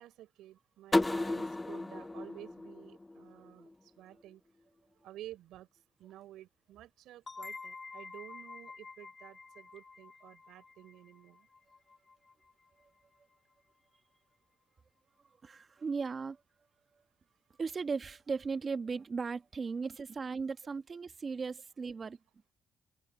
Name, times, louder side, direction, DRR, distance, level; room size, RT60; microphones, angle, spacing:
voice 1, 0.0-3.7 4.0-4.4 5.0-5.7 6.0-11.5, right 13 dB, 85° right, 5.3 m, -52 dB
sound 1, 0.9-3.7, left 2 dB, 15° left, 0.4 m, -33 dB
sound 2, 7.3-12.7, left 4 dB, 35° left, 2.3 m, -49 dB
voice 2, 15.4-16.4 17.6-22.2, right 5 dB, 40° right, 1.5 m, -37 dB
open air
cardioid pair, 90°, 0 cm